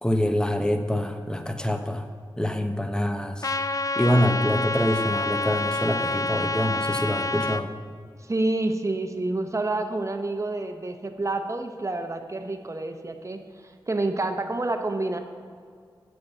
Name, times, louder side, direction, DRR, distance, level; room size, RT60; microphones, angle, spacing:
voice 1, 0.0-2.0 2.4-3.5 4.0-7.7, equal, 10° left, 6 dB, 0.8 m, -25 dB
Trumpet, 3.4-7.6, left 2 dB, 40° left, 0.4 m, -27 dB
voice 2, 8.3-13.4 13.9-15.2, right 2 dB, 35° right, 5 dB, 0.9 m, -28 dB
8.1 x 5.6 x 6.9 m, 2.2 s
cardioid pair, 45°, 9 cm